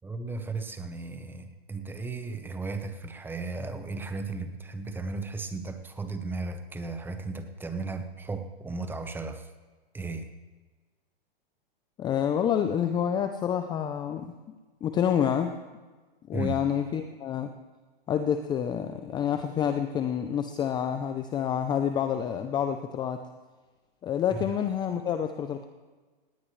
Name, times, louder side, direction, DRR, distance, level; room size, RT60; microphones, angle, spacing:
voice 1, 0.0-9.5 9.9-10.3 16.3-16.6 24.3-24.5, right 3 dB, 5° right, 8 dB, 1.0 m, -35 dB
voice 2, 12.0-14.3 14.8-15.5 16.3-17.5 18.1-23.2 24.0-25.6, left 9 dB, 15° left, 8 dB, 0.6 m, -28 dB
19.0 x 17.5 x 3.2 m, 1.3 s
hypercardioid pair, 135°, 30 cm